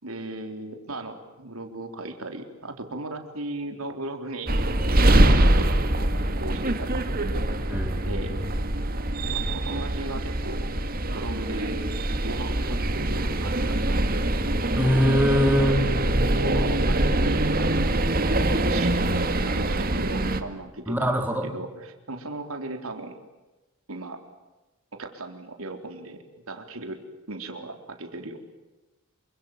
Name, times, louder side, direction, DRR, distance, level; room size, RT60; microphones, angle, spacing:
voice 1, 0.0-4.5 5.0-7.0 8.0-8.4 9.3-10.7 11.1-11.8 12.2-14.3 15.6-17.8 18.3-19.1 19.5-23.2 23.9-24.2 24.9-27.0 27.3-28.4, right 2 dB, 90° right, 6 dB, 3.9 m, -37 dB
sound 1, 4.5-20.4, right 1 dB, 45° right, 2.0 m, -24 dB
voice 2, 7.7-8.4 14.8-15.9 20.9-21.5, equal, 10° right, 4 dB, 4.0 m, -23 dB
28.5 x 25.5 x 7.4 m, 1.1 s
head